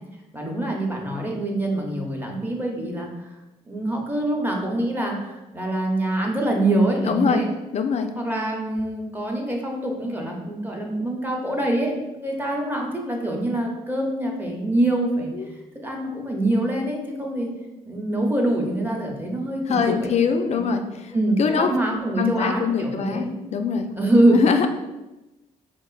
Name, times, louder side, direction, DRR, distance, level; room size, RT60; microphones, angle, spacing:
voice 1, 0.3-3.4 3.7-7.5 8.2-17.5 17.8-20.7 21.1-23.3 24.0-24.4, right 1 dB, 15° right, 0 dB, 0.7 m, -25 dB
voice 2, 7.0-7.4 7.7-8.1 15.3-15.5 19.7-21.1 21.4-21.7 22.2-23.9 24.3-24.7, left 6 dB, 45° left, 6 dB, 0.4 m, -23 dB
3.6 x 2.5 x 2.4 m, 1.0 s
supercardioid pair, 60°, 15 cm